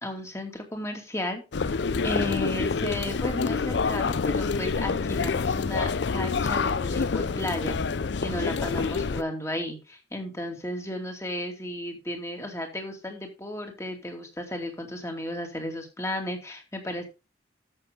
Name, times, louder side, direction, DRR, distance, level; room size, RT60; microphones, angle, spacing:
voice 1, 0.0-7.8 8.2-17.1, left 1 dB, 15° left, 4 dB, 2.5 m, -34 dB
sound 1, 1.5-9.2, left 4 dB, 60° left, 0.5 m, -27 dB
13.5 x 7.0 x 3.6 m, 0.28 s
head